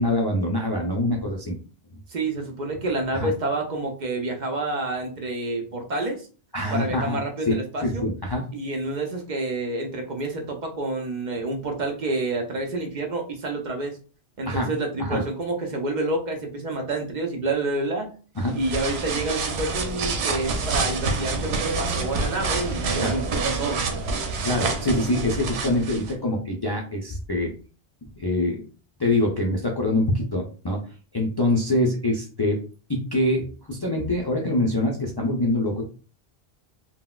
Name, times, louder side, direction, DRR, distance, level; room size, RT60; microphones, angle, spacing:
voice 1, 0.0-1.6 3.1-3.3 6.5-7.2 7.5-8.5 14.5-14.7 15.0-15.2 18.4-18.6 23.0-23.2 24.4-27.5 28.2-28.6 29.0-30.8 31.1-32.6 32.9-35.8, left 1 dB, 40° left, -1 dB, 0.4 m, -24 dB
voice 2, 2.1-6.3 6.7-8.0 8.5-14.0 14.4-18.1 18.6-23.9, right 2 dB, 55° right, 3 dB, 0.6 m, -28 dB
sound 1, 18.4-26.1, right 3 dB, 90° right, 0.9 m, -27 dB
3.8 x 2.1 x 2.3 m, 0.37 s
omnidirectional pair, 1.1 m